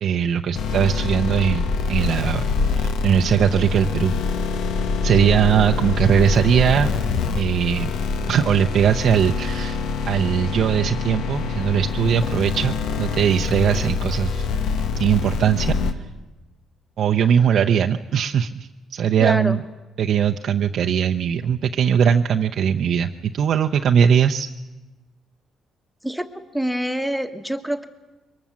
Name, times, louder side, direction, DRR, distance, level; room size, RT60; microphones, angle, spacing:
voice 1, 0.0-2.4 2.7-4.2 5.0-6.9 7.3-7.9 8.3-9.8 10.1-14.5 15.0-15.7 17.0-19.6 20.0-24.5, right 8 dB, 65° right, 4 dB, 0.6 m, -20 dB
sound 1, 0.5-15.9, left 4 dB, 85° left, 1.3 m, -25 dB
voice 2, 19.2-19.6 26.0-27.8, equal, ahead, 8 dB, 1.4 m, -26 dB
23.0 x 19.5 x 7.2 m, 1.1 s
cardioid pair, 90°, 0 cm